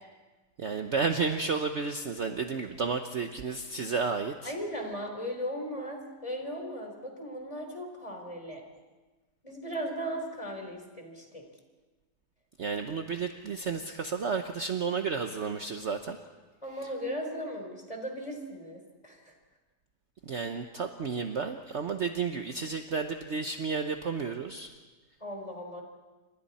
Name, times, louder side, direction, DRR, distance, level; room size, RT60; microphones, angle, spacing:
voice 1, 0.6-4.5 12.6-16.2 20.3-24.7, right 5 dB, 50° right, 6 dB, 1.1 m, -32 dB
voice 2, 4.5-8.6 9.4-11.4 16.6-19.3 25.2-25.8, equal, 20° left, 2 dB, 4.0 m, -37 dB
29.0 x 26.0 x 4.3 m, 1.3 s
omnidirectional pair, 1.8 m